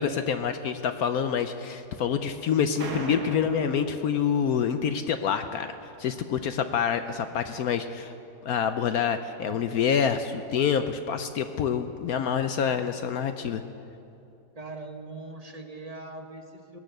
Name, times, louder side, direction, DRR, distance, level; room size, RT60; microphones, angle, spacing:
voice 1, 0.0-8.1 8.4-13.6, left 7 dB, 70° left, 9 dB, 1.0 m, -27 dB
sound 1, 2.8-4.8, right 3 dB, 65° right, 1.9 m, -39 dB
voice 2, 14.5-16.8, right 2 dB, 35° right, 4 dB, 0.7 m, -41 dB
19.5 x 10.0 x 6.7 m, 2.8 s
omnidirectional pair, 1.8 m